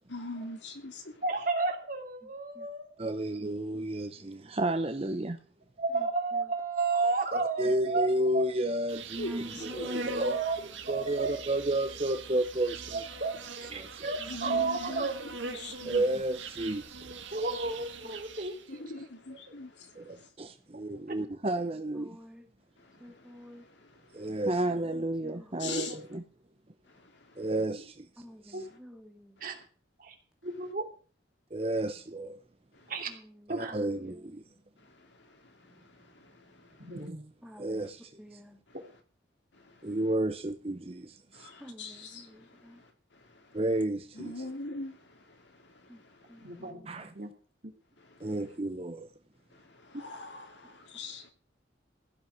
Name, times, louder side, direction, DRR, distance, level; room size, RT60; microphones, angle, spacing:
voice 1, 0.1-1.1 9.2-9.3 9.6-9.9 14.3-15.1 15.5-16.0 18.7-19.7 25.6-25.9 41.3-42.3 44.2-44.9 49.9-51.3, left 2 dB, 70° left, 2.7 m, -40 dB
voice 2, 1.2-3.2 5.8-8.5 10.1-10.6 10.9-11.3 12.9-15.2 17.3-19.4 25.9-26.0 28.5-28.6 29.4-29.6 30.0-30.1 30.4-30.8 32.9-33.1 33.5-33.8 36.8-37.2 46.4-47.3 47.6-47.7, right 3 dB, 45° right, 2.8 m, -33 dB
voice 3, 3.0-5.4 7.3-13.0 13.7-14.0 15.8-17.1 20.0-22.2 24.1-26.2 27.4-28.1 28.4-28.6 31.5-32.4 33.5-34.4 37.1-37.2 37.6-38.4 39.8-41.5 43.5-44.5 46.9-47.1 48.2-49.1, right 1 dB, 30° right, 0.8 m, -32 dB
Insect, 8.9-18.7, right 4 dB, 80° right, 2.4 m, -42 dB
voice 4, 9.2-10.4 14.2-14.6 18.0-18.1 21.2-21.3 21.9-22.5 23.0-23.6 24.9-25.5 28.2-29.4 33.1-34.3 37.4-37.9 38.2-38.6 41.6-42.8 45.9-46.0 46.3-46.9, equal, 5° right, 2.3 m, -50 dB
15.5 x 5.9 x 9.1 m
head